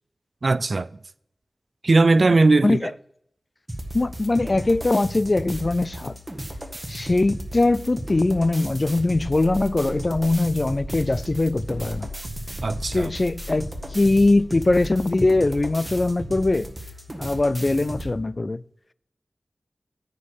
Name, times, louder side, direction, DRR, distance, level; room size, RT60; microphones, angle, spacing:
voice 1, 0.4-0.9 1.8-2.8 12.6-13.1, right 3 dB, 60° right, 0.4 m, -18 dB
sound 1, 3.7-18.1, equal, 20° right, 1.6 m, -35 dB
voice 2, 3.9-6.2 6.9-12.1 12.9-16.7 17.2-18.6, left 2 dB, 40° left, 0.3 m, -21 dB
Growling, 11.1-15.0, equal, 20° left, 3.1 m, -39 dB
9.6 x 5.3 x 8.1 m
wide cardioid pair, 70°, 0 cm